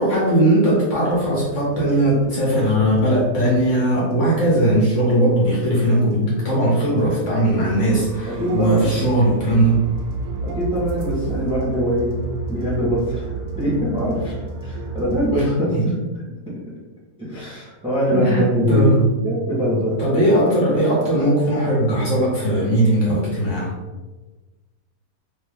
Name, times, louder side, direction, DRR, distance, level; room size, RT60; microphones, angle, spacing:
voice 1, 0.0-9.8 15.7-15.9 18.1-18.4 18.7-19.1 20.0-23.7, right 1 dB, 55° left, -5 dB, 1.0 m, -19 dB
sound 1, 1.1-15.4, right 3 dB, 70° right, 0.7 m, -33 dB
voice 2, 7.5-9.0 9.3-9.4 10.4-12.1 12.5-14.3 14.6-15.8 17.2-20.1, equal, 5° right, -6 dB, 0.7 m, -23 dB
2.7 x 2.6 x 3.5 m, 1.2 s
omnidirectional pair, 1.7 m